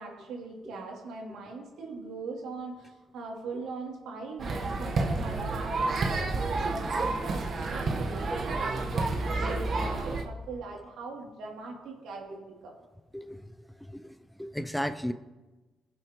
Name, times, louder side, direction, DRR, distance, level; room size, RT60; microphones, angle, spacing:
voice 1, 0.0-8.7 9.2-12.7, right 3 dB, 80° right, -1 dB, 3.0 m, -40 dB
sound 1, 4.4-10.2, right 3 dB, 50° right, 1.3 m, -30 dB
voice 2, 13.1-15.1, equal, 5° left, 11 dB, 0.5 m, -35 dB
20.0 x 7.6 x 3.1 m, 1.2 s
cardioid pair, 90°, 0 cm